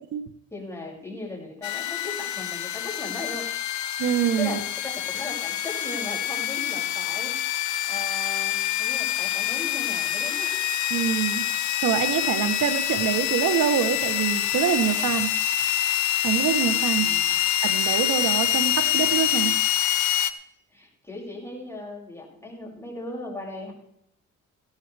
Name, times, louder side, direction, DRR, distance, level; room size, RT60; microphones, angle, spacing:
voice 1, 0.5-3.5 4.4-4.6 5.0-7.4 7.9-10.7 17.0-17.4 20.7-23.7, left 2 dB, 10° left, -3 dB, 6.1 m, -37 dB
sound 1, 1.6-20.3, left 12 dB, 70° left, 0.9 m, -26 dB
voice 2, 4.0-4.6 10.9-11.4 11.8-15.3 16.2-17.1 17.6-19.6, right 9 dB, 75° right, 12 dB, 1.0 m, -25 dB
16.0 x 13.5 x 3.3 m, 0.76 s
cardioid pair, 90°, 30 cm